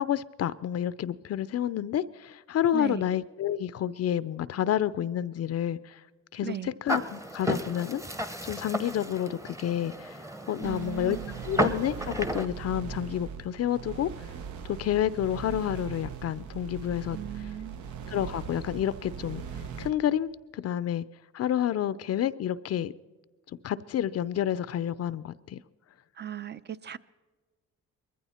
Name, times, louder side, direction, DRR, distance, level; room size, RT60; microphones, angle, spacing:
voice 1, 0.0-6.0 6.3-8.0 8.4-10.2 10.5-11.2 11.5-14.1 14.6-17.2 18.1-19.4 19.8-21.0 21.3-22.9 23.6-25.6, left 10 dB, 55° left, 0.5 m, -29 dB
voice 2, 2.7-3.1 6.4-6.7 10.6-11.4 17.1-17.8 26.2-27.0, right 10 dB, 35° right, 0.6 m, -37 dB
sound 1, 6.9-12.5, right 1 dB, 10° right, 0.9 m, -33 dB
sound 2, 10.6-19.9, right 7 dB, 75° right, 1.1 m, -40 dB
21.0 x 15.0 x 4.3 m
cardioid pair, 90°, 30 cm